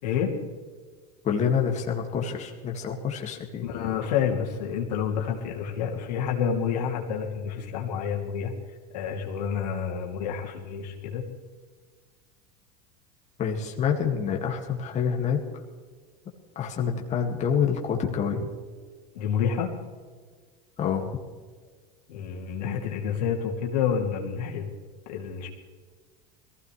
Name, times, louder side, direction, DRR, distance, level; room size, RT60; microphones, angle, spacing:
voice 1, 0.0-0.3 3.6-11.2 19.1-19.7 22.1-24.7 25.1-25.5, left 7 dB, 80° left, -1 dB, 2.9 m, -29 dB
voice 2, 1.2-3.7 13.4-15.4 16.6-18.5 20.8-21.1, left 7 dB, 35° left, 1 dB, 2.2 m, -27 dB
21.5 x 15.5 x 3.4 m, 1.5 s
supercardioid pair, 110°, 21 cm